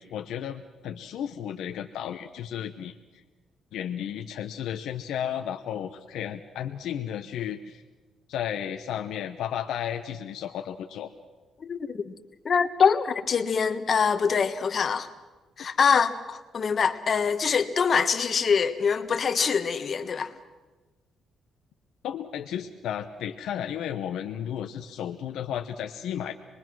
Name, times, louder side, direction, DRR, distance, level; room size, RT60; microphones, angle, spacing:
voice 1, 0.0-2.9 3.7-7.8 8.3-11.1 22.0-26.3, left 9 dB, 80° left, 0.9 m, -33 dB
voice 2, 11.6-12.1 12.4-15.1 15.6-20.3, left 6 dB, 45° left, 1.4 m, -24 dB
25.5 x 21.5 x 6.2 m
cardioid pair, 90°, 0 cm